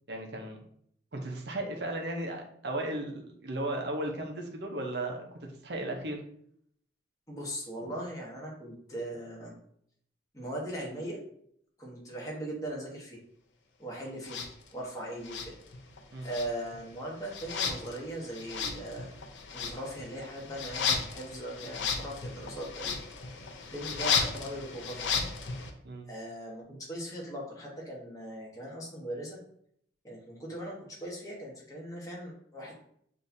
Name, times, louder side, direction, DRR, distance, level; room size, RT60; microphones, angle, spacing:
voice 1, 0.1-0.6 1.1-6.2 7.8-7.9 16.1-16.3 25.8-26.1, right 1 dB, 60° right, 2 dB, 0.8 m, -35 dB
voice 2, 7.3-9.5 10.3-11.2 11.8-13.2 13.8-14.4 14.7-15.5 16.2-19.1 19.5-23.0 23.7-25.3 26.1-29.4 30.0-32.7, right 1 dB, 20° left, -3 dB, 1.1 m, -39 dB
sound 1, 14.2-14.5 15.2-16.0 16.2-25.7, left 6 dB, 75° left, 0.6 m, -34 dB
6.4 x 2.8 x 2.7 m, 0.67 s
head